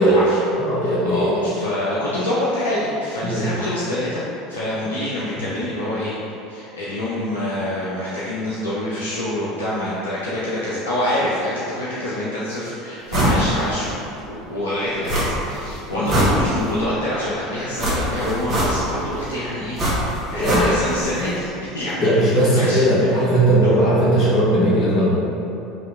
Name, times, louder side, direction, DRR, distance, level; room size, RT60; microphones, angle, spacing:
voice 1, 0.0-0.5 0.8-6.1 6.5-13.9 14.2-23.1 23.6-23.7, left 1 dB, 75° left, -8 dB, 0.5 m, -26 dB
voice 2, 0.6-1.4 3.2-3.5 16.0-16.1 20.3-20.7 22.0-25.1, right 1 dB, 45° left, -8 dB, 1.4 m, -18 dB
sound 1, 13.1-13.4 13.8-13.9 15.1-15.6 15.9-16.8 17.8-19.1 19.8-21.0 21.3-21.4, right 1 dB, 40° right, 1.2 m, -21 dB
5.0 x 2.7 x 3.6 m, 2.9 s
figure-of-eight pair, 70°, 0 cm